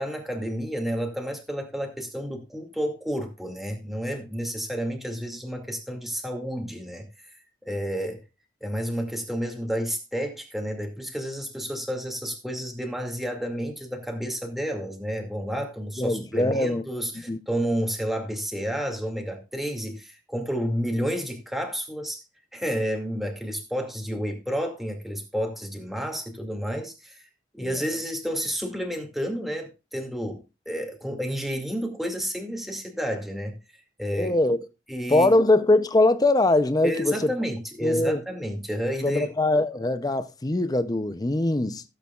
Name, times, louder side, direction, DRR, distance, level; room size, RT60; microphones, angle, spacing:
voice 1, 0.0-7.1 7.6-8.2 8.6-22.2 22.5-27.3 27.5-34.4 34.9-35.3 36.8-39.3, equal, ahead, 2.3 m, -30 dB
voice 2, 16.0-16.8 17.3-17.4 27.6-27.8 34.1-34.6 35.1-37.3 37.8-38.2 39.0-41.8, left 2 dB, 20° left, 0.6 m, -22 dB
16.5 x 8.4 x 2.4 m
head